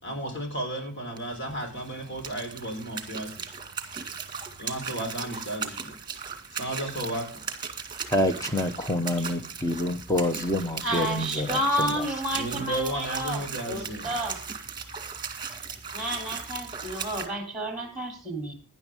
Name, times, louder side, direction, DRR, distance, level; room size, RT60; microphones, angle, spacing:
voice 1, 0.0-3.5 4.6-6.0 6.5-7.3 12.4-14.1, right 1 dB, 50° left, 4.6 m, -33 dB
sound 1, 1.1-17.3, right 6 dB, 20° right, 2.1 m, -38 dB
voice 2, 8.1-12.0, left 1 dB, 15° left, 1.1 m, -27 dB
voice 3, 10.8-14.4 15.9-18.5, equal, ahead, 3.4 m, -30 dB
18.5 x 10.5 x 3.7 m
head